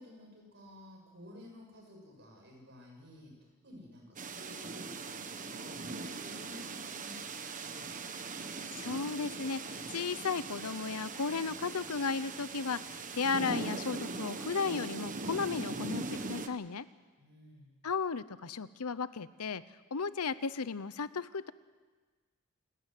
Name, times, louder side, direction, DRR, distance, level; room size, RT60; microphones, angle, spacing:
voice 1, 0.0-8.4 17.2-17.8, left 1 dB, 50° right, 1 dB, 7.2 m, -54 dB
sound 1, 4.2-16.5, right 3 dB, 35° right, 1.2 m, -40 dB
voice 2, 8.7-16.9 17.8-19.6 19.9-21.5, left 5 dB, 85° left, 15 dB, 0.8 m, -35 dB
28.5 x 12.5 x 9.3 m, 1.4 s
head